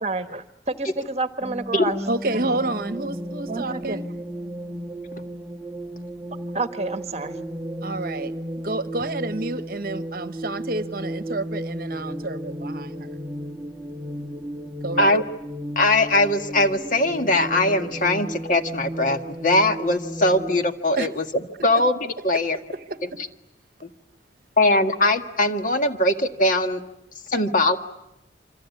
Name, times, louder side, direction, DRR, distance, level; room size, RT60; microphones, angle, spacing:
voice 1, 0.0-2.0 3.5-4.0 6.5-7.4, right 3 dB, 35° right, 1.4 m, -29 dB
sound 1, 1.4-20.6, right 1 dB, 5° right, 1.3 m, -34 dB
voice 2, 2.1-4.1 7.8-8.3 8.6-13.2 14.8-15.2 21.0-21.1 22.3-23.0, right 2 dB, 55° right, 1.1 m, -29 dB
voice 3, 15.8-21.2 21.6-22.6 23.0-23.1 24.6-26.8 27.3-27.8, left 2 dB, 50° left, 1.8 m, -21 dB
27.5 x 25.5 x 8.4 m
head